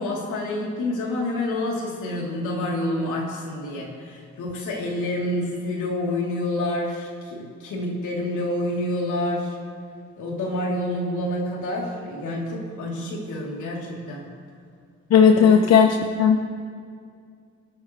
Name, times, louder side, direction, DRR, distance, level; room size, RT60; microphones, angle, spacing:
voice 1, 0.0-9.5 10.2-14.3 15.3-15.6, left 1 dB, 80° left, -3 dB, 3.3 m, -28 dB
voice 2, 15.1-16.4, left 6 dB, 55° left, 5 dB, 0.9 m, -15 dB
25.0 x 9.1 x 3.2 m, 2.2 s
cardioid pair, 90°, 30 cm